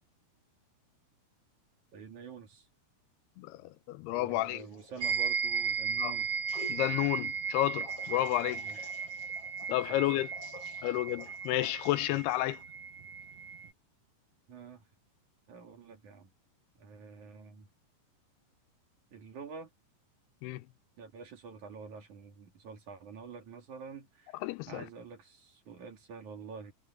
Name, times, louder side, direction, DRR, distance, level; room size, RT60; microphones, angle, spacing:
voice 1, 1.9-2.7 4.1-6.3 8.6-8.8 9.7-10.2 14.5-14.8 15.5-16.3 16.8-17.7 19.1-19.7 21.0-24.4 24.7-26.7, right 5 dB, 50° right, 3.5 m, -47 dB
voice 2, 3.9-4.6 6.0-6.1 6.7-8.6 9.7-10.3 10.8-12.6 20.4-20.6 24.4-24.8, left 16 dB, 80° left, 2.7 m, -31 dB
sound 1, 4.3-5.1 6.5-6.8 7.8-12.6, left 2 dB, 35° left, 7.9 m, -50 dB
sound 2, 5.0-13.7, right 6 dB, 80° right, 1.3 m, -36 dB
omnidirectional pair, 4.7 m